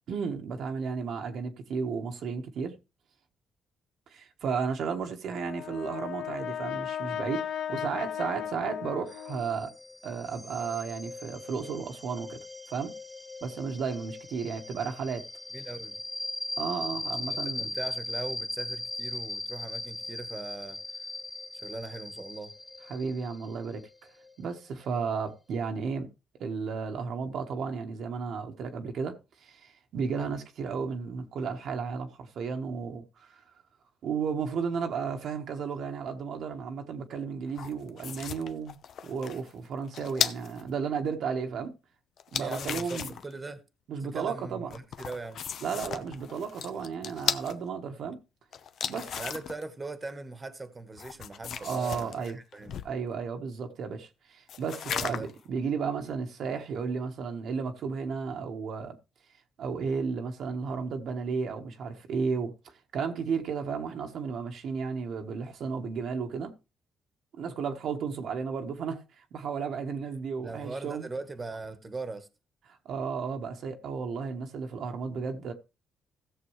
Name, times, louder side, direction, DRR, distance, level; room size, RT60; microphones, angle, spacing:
voice 1, 0.1-2.8 4.1-9.7 10.0-12.4 12.7-12.9 13.4-15.3 16.6-17.7 22.9-23.8 24.4-26.1 26.4-29.1 29.4-33.4 34.0-38.7 39.0-41.7 42.3-43.1 43.9-44.7 45.6-48.2 48.9-49.2 51.6-52.4 52.8-59.0 59.6-66.5 67.4-71.1 72.7-75.5, right 5 dB, 70° right, 1.4 m, -33 dB
Brass instrument, 5.3-9.7, left 9 dB, 85° left, 1.3 m, -36 dB
sound 1, 9.1-25.4, left 2 dB, 10° left, 0.9 m, -39 dB
voice 2, 15.5-16.0 17.3-21.0 21.6-22.5 42.3-43.6 44.0-45.4 45.9-46.0 49.1-52.8 54.8-55.3 70.4-72.3, right 3 dB, 25° right, 1.3 m, -40 dB
sound 2, 37.5-40.6 42.2-43.3 44.7-47.5 48.5-49.6 51.0-53.0 54.5-55.4, left 8 dB, 65° left, 0.8 m, -35 dB
16.0 x 6.8 x 3.2 m
cardioid pair, 90°, 0 cm